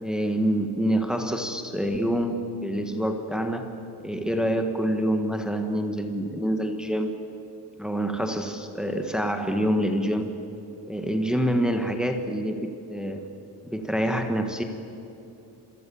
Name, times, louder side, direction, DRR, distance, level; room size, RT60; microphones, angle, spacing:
voice 1, 0.0-3.7 4.0-7.1 7.8-10.3 10.9-13.3 13.6-14.6, equal, ahead, 4 dB, 1.7 m, -26 dB
28.0 x 23.5 x 7.2 m, 2.8 s
cardioid pair, 150°, 42 cm